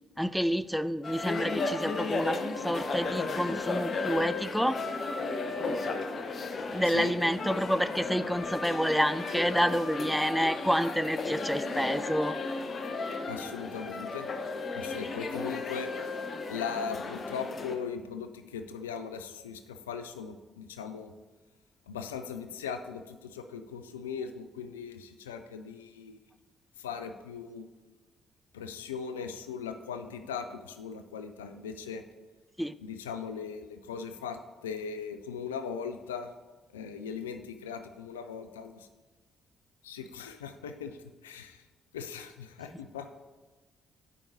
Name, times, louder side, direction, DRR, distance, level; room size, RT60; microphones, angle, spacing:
voice 1, 0.2-4.8 6.7-12.4 32.6-32.7, equal, ahead, 13 dB, 0.3 m, -28 dB
sound 1, 1.0-17.8, left 3 dB, 45° left, 0.7 m, -34 dB
voice 2, 13.3-14.3 14.7-15.9 16.5-21.1 21.9-26.2 26.8-27.7 28.5-32.1 32.8-36.3 36.7-38.9 39.8-41.6 41.9-43.2, left 6 dB, 85° left, 8 dB, 0.3 m, -39 dB
10.5 x 5.0 x 2.7 m, 1.2 s
figure-of-eight pair, 40°, 0 cm